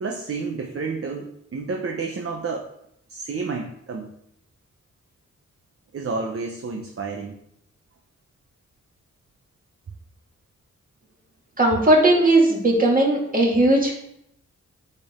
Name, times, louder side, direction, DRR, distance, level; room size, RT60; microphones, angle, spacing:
voice 1, 0.0-2.7 3.1-4.1 5.9-7.4, right 4 dB, 50° right, 2 dB, 0.9 m, -30 dB
voice 2, 11.6-13.9, right 1 dB, 30° right, -2 dB, 2.1 m, -17 dB
8.0 x 4.5 x 3.7 m, 0.76 s
cardioid pair, 75°, 30 cm